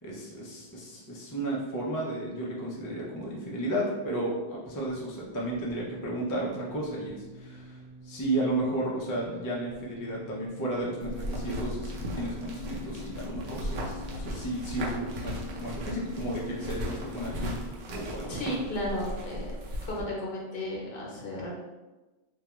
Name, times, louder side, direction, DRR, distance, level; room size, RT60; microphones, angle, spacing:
voice 1, 0.0-17.6 17.9-18.5, right 1 dB, 30° left, -4 dB, 0.3 m, -33 dB
sound 1, 5.3-17.5, left 4 dB, 10° left, 0.8 m, -46 dB
sound 2, 11.0-20.0, equal, 80° right, 0.8 m, -37 dB
voice 2, 18.3-19.5 19.9-21.5, left 1 dB, 65° left, -3 dB, 0.8 m, -34 dB
2.3 x 2.2 x 2.9 m, 1.2 s
omnidirectional pair, 1.0 m